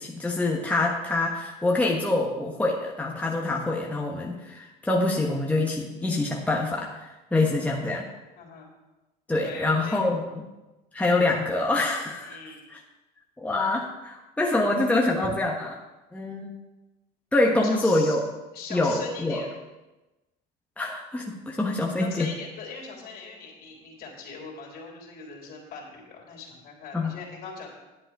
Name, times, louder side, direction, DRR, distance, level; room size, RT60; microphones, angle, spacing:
voice 1, 0.0-8.0 9.3-10.2 10.9-12.4 13.4-15.8 16.1-16.5 17.3-18.2 18.7-19.4 20.8-22.3 26.9-27.2, left 2 dB, 10° left, -1 dB, 1.3 m, -25 dB
voice 2, 8.4-8.7 9.4-10.3 12.2-12.7 15.2-15.3 17.6-18.2 18.5-19.6 22.0-27.7, left 4 dB, 55° left, -1 dB, 3.5 m, -41 dB
10.5 x 7.9 x 4.8 m, 1.1 s
supercardioid pair, 100°, 18 cm